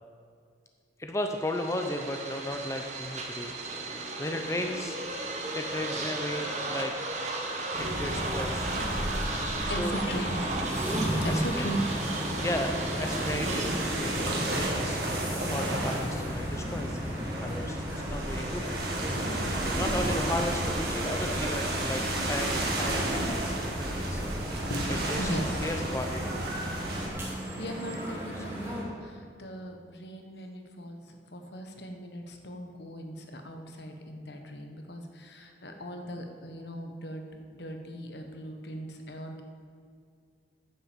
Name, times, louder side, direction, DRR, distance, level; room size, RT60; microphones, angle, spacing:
voice 1, 1.0-3.5 4.2-5.0 5.5-6.9 7.5-8.7 9.8-10.0 11.2-11.7 12.4-15.0 15.5-17.1 17.4-18.6 19.7-24.2 25.1-26.3, left 1 dB, 15° left, 4 dB, 0.6 m, -35 dB
sound 1, 1.3-14.9, right 2 dB, 40° right, 1.2 m, -35 dB
sound 2, 7.7-27.1, right 1 dB, 60° right, 1.9 m, -33 dB
voice 2, 9.2-10.7 11.2-11.8 24.4-25.7 27.6-39.4, equal, 70° left, 4 dB, 1.2 m, -38 dB
sound 3, 9.9-28.8, equal, 15° right, 2.6 m, -36 dB
9.6 x 7.5 x 7.3 m, 2.2 s
head